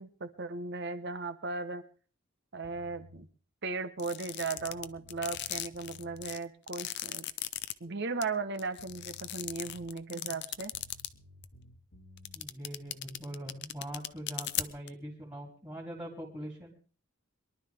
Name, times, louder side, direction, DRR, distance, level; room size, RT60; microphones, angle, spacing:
voice 1, 0.0-1.8 2.5-3.3 3.6-7.2 7.8-10.7, right 4 dB, 55° right, 11 dB, 1.1 m, -37 dB
sound 1, 2.6-3.2 4.2-4.3 4.6-6.3 8.4-8.5 8.8-10.0 10.7-12.4, left 1 dB, 75° left, 1.7 m, -55 dB
sound 2, 4.0-7.7 8.2-8.3 8.6-11.1 11.4-11.5 12.2-14.9, left 14 dB, 55° left, 0.7 m, -37 dB
voice 2, 12.3-16.8, equal, 15° right, -4 dB, 3.1 m, -42 dB
23.0 x 11.5 x 3.5 m, 0.42 s
head